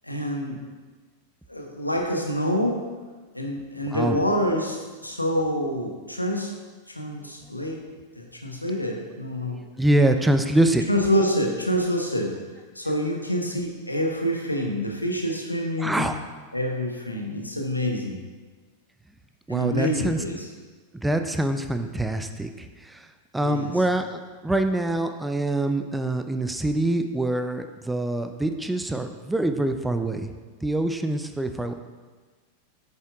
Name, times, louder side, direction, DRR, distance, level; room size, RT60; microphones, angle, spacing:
voice 1, 0.0-0.6 1.5-2.8 3.3-6.5 6.9-7.9 8.2-9.6 10.9-12.4 12.7-16.1 16.5-18.2 19.5-20.4 23.4-23.7, equal, 85° left, 1 dB, 0.9 m, -27 dB
voice 2, 9.5-10.8 15.8-16.2 19.5-20.2 20.9-23.1 23.3-30.3 30.6-31.7, right 1 dB, 5° right, 7 dB, 0.4 m, -25 dB
8.5 x 6.8 x 2.4 m, 1.4 s
figure-of-eight pair, 90°, 0 cm